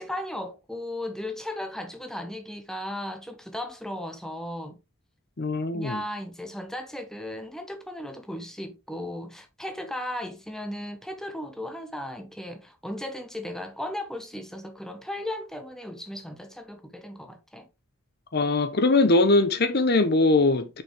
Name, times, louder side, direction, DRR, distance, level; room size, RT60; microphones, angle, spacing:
voice 1, 0.0-4.8 5.7-17.7, left 1 dB, ahead, 1.0 m, -36 dB
voice 2, 5.4-6.0 18.3-20.8, left 2 dB, 50° left, 0.8 m, -21 dB
6.8 x 5.5 x 3.4 m
head